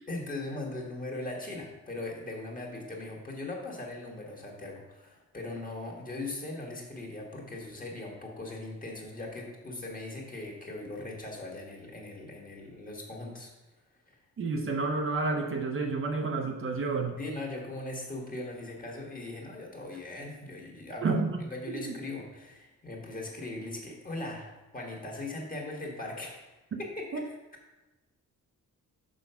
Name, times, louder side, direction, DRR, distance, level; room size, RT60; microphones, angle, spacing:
voice 1, 0.1-13.5 14.1-14.2 17.2-26.5 26.8-27.2, left 2 dB, 25° left, -1 dB, 1.5 m, -39 dB
voice 2, 14.4-17.2 21.0-21.4 21.7-22.0 27.1-27.2, right 3 dB, 40° right, 3 dB, 0.6 m, -30 dB
6.2 x 4.6 x 5.6 m, 1.1 s
wide cardioid pair, 150°, 32 cm